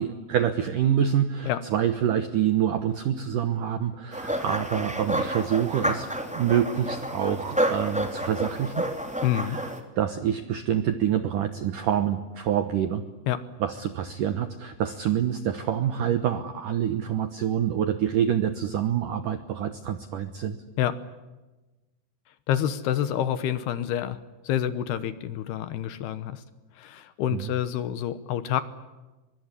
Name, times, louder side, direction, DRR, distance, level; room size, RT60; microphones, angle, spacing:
voice 1, 0.0-8.7 9.4-9.7 10.0-13.0 13.6-20.6 27.3-27.4, right 9 dB, 80° right, 10 dB, 1.9 m, -26 dB
sound 1, 4.1-9.8, right 1 dB, ahead, 1.9 m, -30 dB
voice 2, 9.2-9.6 13.3-13.4 20.8-21.0 22.5-24.2 24.4-26.4 26.8-28.6, left 11 dB, 70° left, 13 dB, 2.7 m, -28 dB
24.0 x 23.0 x 9.8 m, 1.1 s
omnidirectional pair, 5.4 m